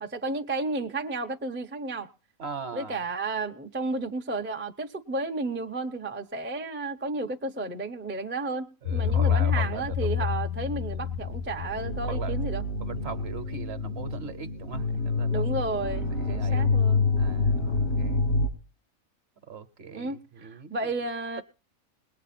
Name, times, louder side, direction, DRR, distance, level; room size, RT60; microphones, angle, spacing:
voice 1, 0.0-2.1 2.7-12.6 15.3-17.1 19.9-21.4, right 3 dB, 15° right, 0.4 m, -32 dB
voice 2, 2.4-3.0 8.8-10.3 12.0-12.3 12.8-15.4 16.1-16.8 17.2-18.3 19.5-20.7, right 6 dB, 55° right, 1.0 m, -40 dB
sound 1, 8.8-18.5, left 4 dB, 90° left, 2.2 m, -27 dB
20.0 x 8.2 x 4.2 m
omnidirectional pair, 1.4 m